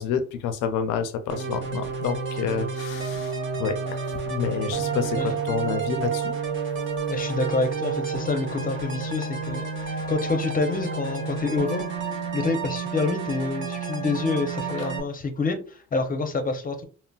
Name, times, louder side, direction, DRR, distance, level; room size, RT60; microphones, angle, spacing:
voice 1, 0.0-4.0 4.3-6.4 14.7-14.9, left 7 dB, 90° left, 0.5 m, -29 dB
sound 1, 1.3-15.0, right 5 dB, 40° right, 0.8 m, -30 dB
voice 2, 7.1-11.8 12.3-16.9, left 3 dB, 30° left, 0.6 m, -27 dB
3.8 x 2.0 x 2.3 m
cardioid pair, 90°, 30 cm